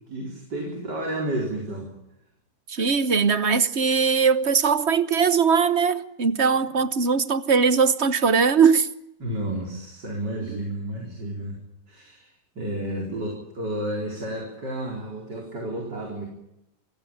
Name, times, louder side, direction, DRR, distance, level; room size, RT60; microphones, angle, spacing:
voice 1, 0.1-1.9 9.2-11.6 11.9-12.3 12.5-16.3, right 1 dB, 80° right, 5.1 m, -31 dB
voice 2, 2.7-8.9, right 5 dB, 45° right, 1.2 m, -20 dB
28.0 x 16.5 x 8.9 m
omnidirectional pair, 1.8 m